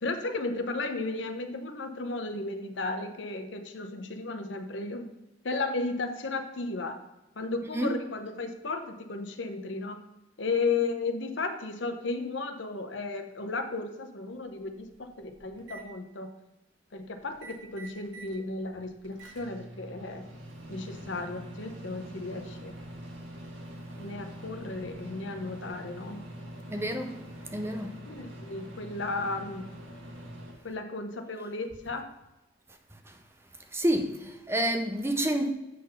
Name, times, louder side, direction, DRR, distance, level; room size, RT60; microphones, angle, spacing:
voice 1, 0.0-5.0 5.4-7.0 7.4-10.0 10.4-16.3 16.9-20.3 20.7-22.7 24.0-26.2 28.1-29.6 30.6-32.1, left 3 dB, 70° left, 0.8 m, -34 dB
Microwave oven, 14.3-14.4 14.8-15.8 17.3-18.4 18.7-30.5, right 1 dB, 85° right, 1.5 m, -44 dB
voice 2, 26.7-27.2 27.5-27.9 33.1-33.2 33.7-35.5, right 1 dB, 15° right, 0.6 m, -29 dB
8.4 x 4.0 x 5.3 m
head